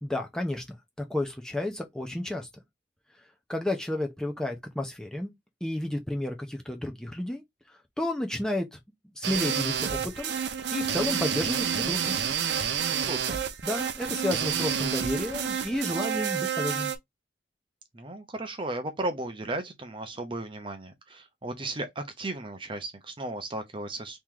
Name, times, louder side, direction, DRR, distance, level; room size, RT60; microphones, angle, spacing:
voice 1, 0.0-2.5 3.5-5.3 5.6-7.4 7.7-8.8 9.2-12.2 13.6-16.9, left 1 dB, 5° left, 0.7 m, -32 dB
sound 1, 9.2-17.0, right 8 dB, 70° right, 0.6 m, -29 dB
voice 2, 13.0-13.4 17.9-24.2, right 2 dB, 30° right, 0.7 m, -35 dB
3.1 x 3.0 x 3.7 m
head